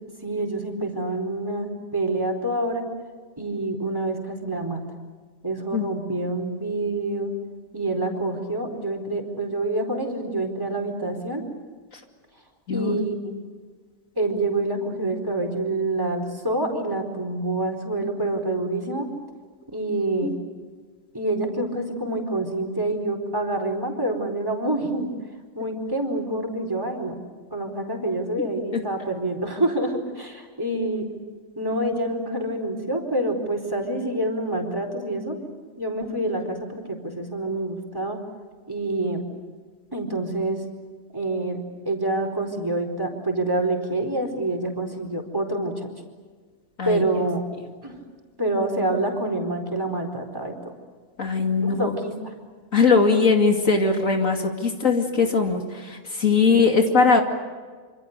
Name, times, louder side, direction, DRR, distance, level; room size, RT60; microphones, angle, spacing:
voice 1, 0.2-2.8 3.4-4.8 5.4-7.3 7.7-11.4 12.7-13.4 14.2-19.1 19.7-20.3 21.1-25.1 25.5-27.2 27.5-31.1 31.6-35.4 35.8-38.2 38.7-39.2 39.9-40.6 41.1-45.9 46.8-47.4 47.8-48.0 48.4-50.7 51.6-52.3 56.5-56.6, right 2 dB, 15° right, 4 dB, 4.4 m, -27 dB
voice 2, 12.7-13.0 20.2-20.4 28.7-28.8 46.8-47.0 51.2-51.9 52.7-57.2, left 4 dB, 60° left, 3 dB, 2.8 m, -20 dB
26.5 x 26.5 x 6.8 m, 1.5 s
omnidirectional pair, 1.5 m